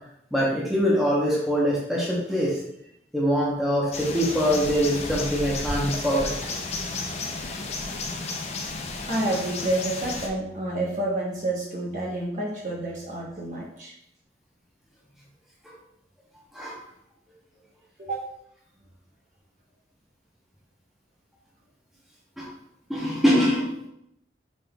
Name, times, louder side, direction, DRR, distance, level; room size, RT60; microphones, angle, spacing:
voice 1, 0.3-2.6 3.1-6.3 16.5-16.8 22.4-22.5 22.9-23.8, equal, ahead, -6 dB, 0.8 m, -23 dB
sound 1, 3.9-10.3, left 3 dB, 35° left, 0.4 m, -32 dB
voice 2, 9.0-13.9 18.0-18.3, right 1 dB, 45° right, -3 dB, 1.0 m, -29 dB
5.1 x 3.7 x 2.3 m, 0.76 s
head